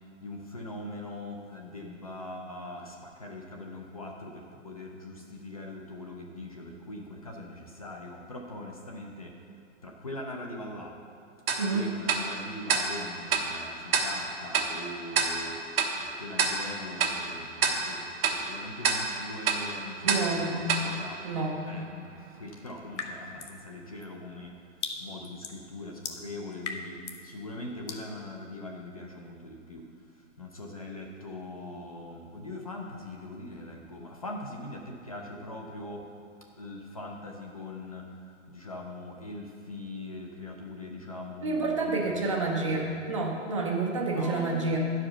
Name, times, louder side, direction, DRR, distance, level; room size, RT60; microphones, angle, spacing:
voice 1, 0.2-9.4 9.8-10.9 11.7-15.6 16.0-22.1 22.4-24.5 25.0-29.8 30.4-36.1 36.5-38.1 38.5-43.1 44.1-44.8, left 2 dB, 30° left, 0 dB, 0.5 m, -41 dB
Tick-tock, 11.5-21.9, right 5 dB, 50° right, 1.1 m, -30 dB
voice 2, 20.0-20.6 21.2-21.6 41.4-44.8, right 3 dB, 25° right, -1 dB, 0.7 m, -29 dB
sound 1, 23.0-23.6 24.0-27.3 27.9-28.1, left 5 dB, 70° left, 1.1 m, -39 dB
10.5 x 4.9 x 5.6 m, 2.5 s
hypercardioid pair, 175°, 38 cm